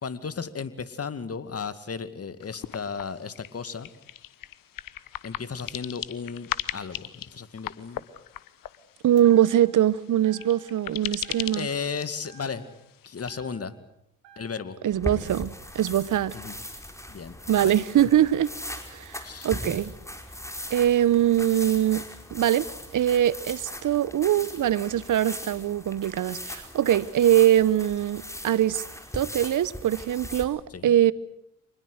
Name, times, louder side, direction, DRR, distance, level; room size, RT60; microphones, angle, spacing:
voice 1, 0.0-3.9 5.2-8.0 11.6-12.6 13.0-13.7 14.4-14.8 16.3-16.6 17.1-17.7 19.2-19.5 30.7-30.9, left 5 dB, 40° left, 2.2 m, -35 dB
sound 1, 2.4-13.3, left 12 dB, 65° left, 1.2 m, -39 dB
voice 2, 9.0-11.7 14.8-16.3 17.5-18.5 18.9-19.9 20.7-22.1 22.3-22.7 22.9-28.8 29.1-31.1, right 11 dB, 60° right, 1.0 m, -22 dB
sound 2, 9.2-9.9 10.2-10.9 11.2-11.9 12.2-13.9 14.2-14.9, right 7 dB, 85° right, 4.1 m, -53 dB
sound 3, 14.9-30.4, left 1 dB, 10° left, 4.9 m, -39 dB
25.5 x 20.5 x 8.0 m
hypercardioid pair, 45°, 35 cm